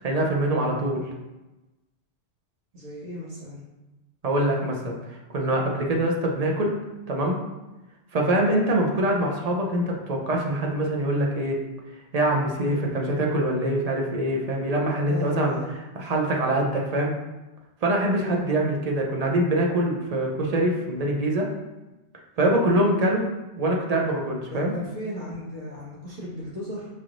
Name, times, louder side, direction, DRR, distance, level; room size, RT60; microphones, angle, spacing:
voice 1, 0.0-1.0 4.2-6.7 7.1-7.4 8.1-11.6 12.1-15.6 16.0-17.1 17.8-21.5 22.4-23.2 23.6-24.7, right 1 dB, 45° right, 0 dB, 0.6 m, -24 dB
voice 2, 2.7-3.6 12.6-12.9 15.1-15.7 18.1-18.4 24.5-26.9, equal, 70° right, -7 dB, 1.8 m, -35 dB
5.7 x 3.1 x 2.5 m, 1.1 s
omnidirectional pair, 1.2 m